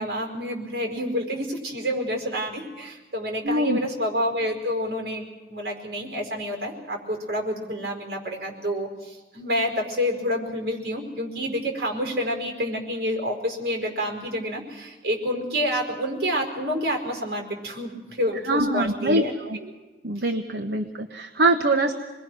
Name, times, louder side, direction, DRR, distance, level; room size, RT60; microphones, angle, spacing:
voice 1, 0.0-19.3 19.6-19.7 20.2-20.3, equal, 60° right, 2 dB, 4.8 m, -28 dB
voice 2, 3.4-3.8 18.4-19.6 20.0-21.9, right 2 dB, 75° right, 5 dB, 1.1 m, -23 dB
26.5 x 20.5 x 6.2 m, 1.2 s
head